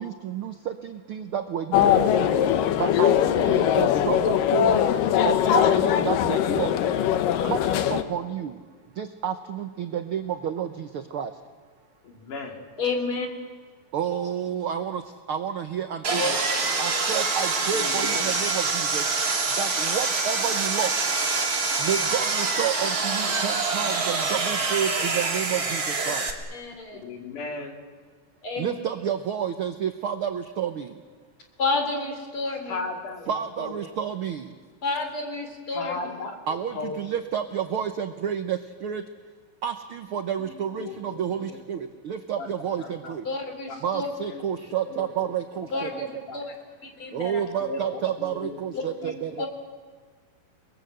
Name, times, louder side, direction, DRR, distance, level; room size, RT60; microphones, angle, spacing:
voice 1, 0.0-2.4 2.7-4.9 5.2-6.8 7.4-8.6 8.9-11.4 13.9-16.4 16.8-19.1 19.5-21.0 21.6-26.3 28.6-31.0 33.3-34.6 36.5-39.0 39.6-43.3 43.8-46.2 47.1-49.4, right 8 dB, 75° right, 7 dB, 1.2 m, -30 dB
sound 1, 1.7-8.0, left 10 dB, 85° left, 2.7 m, -21 dB
voice 2, 12.0-12.6 17.7-18.3 27.0-27.7 32.7-33.3 33.6-33.7 35.7-36.3 36.7-37.0 40.4-41.6 42.4-42.5 42.8-43.1 44.0-44.5 44.9-45.1 45.7-46.0 46.3-46.4 47.6-48.6 49.1-49.5, left 3 dB, 70° left, 2 dB, 4.3 m, -36 dB
voice 3, 12.8-13.3 16.1-16.6 26.5-27.0 28.4-28.7 31.6-32.8 34.8-36.1 43.3-44.1 45.7-46.1 46.3-46.5 46.8-47.4 49.0-49.1 49.4-49.5, left 3 dB, 40° left, 4 dB, 4.3 m, -30 dB
Sawing, 16.0-26.3, right 4 dB, 30° right, 2.2 m, -25 dB
29.5 x 21.0 x 8.0 m, 1.5 s
omnidirectional pair, 3.7 m